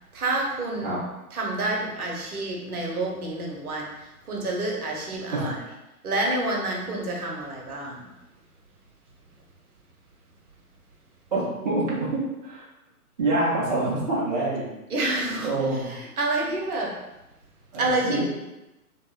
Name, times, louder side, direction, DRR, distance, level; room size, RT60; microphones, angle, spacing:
voice 1, 0.1-1.0 1.3-3.9 4.3-5.6 6.0-8.0 14.9-15.5 15.9-16.9 17.8-18.2, right 2 dB, 75° right, -1 dB, 0.8 m, -28 dB
voice 2, 11.3-12.6 13.2-14.7 15.4-16.0 17.7-18.2, right 2 dB, 30° right, -6 dB, 0.4 m, -26 dB
2.8 x 2.0 x 2.2 m, 0.96 s
figure-of-eight pair, 130°, 45 cm